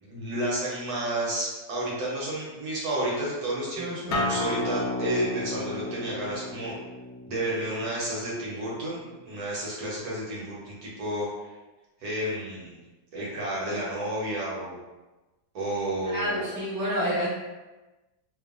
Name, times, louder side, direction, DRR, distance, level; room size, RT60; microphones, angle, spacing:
voice 1, 0.0-6.7 7.3-11.5 12.0-12.8 13.1-14.8 15.5-16.5, right 1 dB, 65° right, -6 dB, 1.1 m, -31 dB
voice 2, 3.8-4.2 16.1-17.3, equal, 5° right, -9 dB, 0.4 m, -29 dB
Acoustic guitar, 4.1-9.3, left 2 dB, 80° left, 0.7 m, -33 dB
3.0 x 2.1 x 2.3 m, 1.1 s
omnidirectional pair, 2.0 m